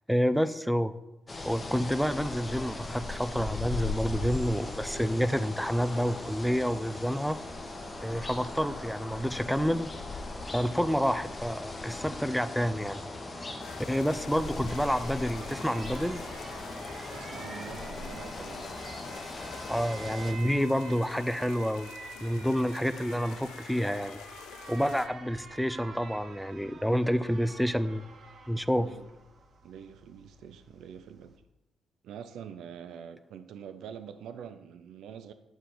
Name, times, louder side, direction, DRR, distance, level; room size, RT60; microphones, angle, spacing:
voice 1, 0.1-0.9 1.4-7.4 8.0-9.9 10.5-13.0 13.9-16.2 19.7-21.9 22.2-24.2 24.7-28.0 28.5-28.9, equal, ahead, 13 dB, 0.4 m, -28 dB
sound 1, 1.3-20.3, left 2 dB, 25° left, 1.1 m, -39 dB
sound 2, 13.6-25.1, left 10 dB, 85° left, 0.3 m, -48 dB
Alarm, 14.1-31.4, right 4 dB, 50° right, 0.8 m, -48 dB
voice 2, 17.1-18.7 28.8-29.1 29.6-31.3 32.0-35.3, right 8 dB, 80° right, 11 dB, 0.4 m, -45 dB
8.3 x 4.7 x 3.9 m, 0.93 s
cardioid pair, 90°, 0 cm